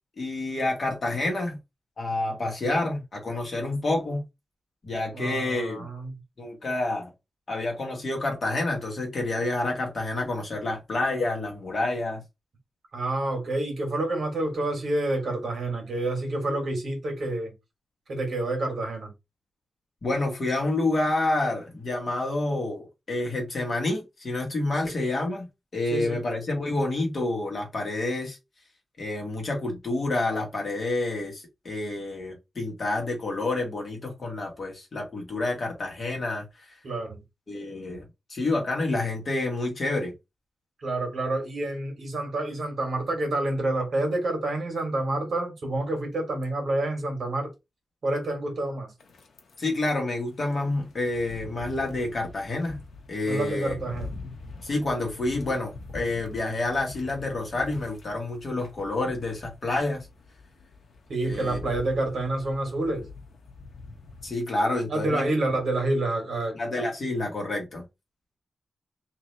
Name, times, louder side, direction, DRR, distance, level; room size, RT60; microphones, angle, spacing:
voice 1, 0.2-1.6 2.0-4.2 4.8-5.9 6.4-7.1 7.5-12.2 20.0-25.5 25.7-28.4 29.0-36.7 37.5-40.1 49.6-52.8 53.1-53.8 54.6-60.1 61.2-61.6 64.2-65.3 66.5-67.8, left 2 dB, 40° left, 1.3 m, -28 dB
voice 2, 5.1-6.1 12.9-17.5 18.1-19.1 25.9-26.2 36.8-37.2 40.8-47.5 48.0-48.9 53.2-54.2 61.1-63.1 64.9-66.6, right 2 dB, 55° right, 1.7 m, -28 dB
sound 1, 49.0-64.3, left 3 dB, 80° left, 0.7 m, -44 dB
3.2 x 2.7 x 4.1 m
wide cardioid pair, 180°, 0 cm